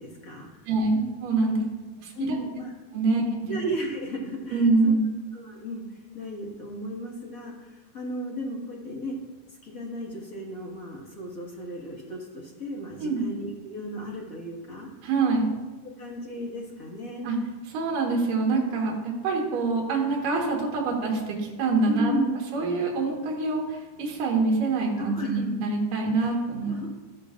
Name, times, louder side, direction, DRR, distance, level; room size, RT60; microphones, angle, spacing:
voice 1, 0.0-0.7 1.5-1.6 2.1-2.7 3.1-4.9 5.3-9.2 9.6-14.9 16.0-17.3 21.9-22.5 25.0-25.4 26.2-26.3 26.6-26.9, equal, 35° left, -3 dB, 1.6 m, -35 dB
voice 2, 0.7-1.6 2.0-2.3 2.9-3.5 4.5-5.0 13.0-13.2 15.0-15.5 17.2-17.4 17.7-22.2 22.5-26.7, right 3 dB, 80° right, -1 dB, 3.1 m, -25 dB
13.5 x 12.0 x 2.5 m, 1.3 s
omnidirectional pair, 3.8 m